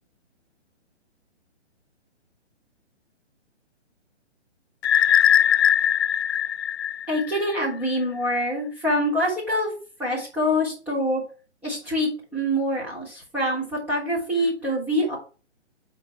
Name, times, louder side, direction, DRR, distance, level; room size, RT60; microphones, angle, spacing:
sound 1, 4.8-7.7, left 9 dB, 60° left, 0.5 m, -20 dB
voice 1, 7.1-9.7 10.0-11.2 11.6-15.2, equal, 5° right, -8 dB, 3.3 m, -25 dB
6.2 x 4.6 x 6.1 m, 0.35 s
hypercardioid pair, 160°, 35 cm